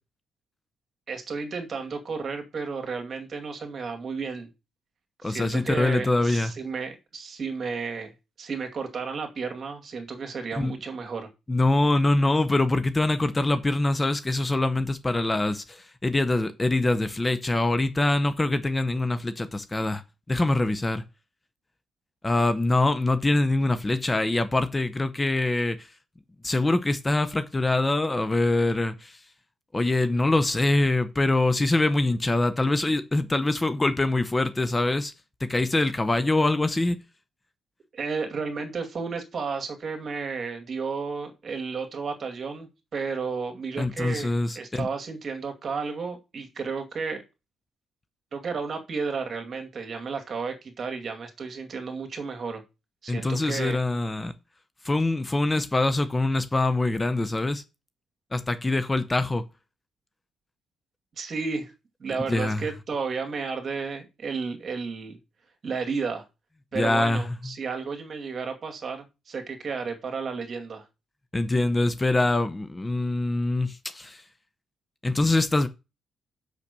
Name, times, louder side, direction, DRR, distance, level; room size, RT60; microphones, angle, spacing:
voice 1, 1.1-4.5 5.2-8.1 8.4-11.3 37.9-47.2 48.3-52.6 53.0-53.8 61.2-61.7 62.0-65.2 65.6-66.2 66.7-70.8, right 5 dB, 45° right, 2.3 m, -32 dB
voice 2, 5.2-6.5 10.6-10.7 11.5-20.0 20.3-21.0 22.2-25.9 26.4-29.2 29.7-35.1 35.5-37.0 43.8-44.9 53.1-54.3 54.8-57.6 58.3-59.4 62.3-62.6 66.7-67.2 71.3-74.2 75.0-75.7, left 2 dB, 20° left, 0.8 m, -24 dB
5.9 x 5.9 x 6.7 m
cardioid pair, 90°, 0 cm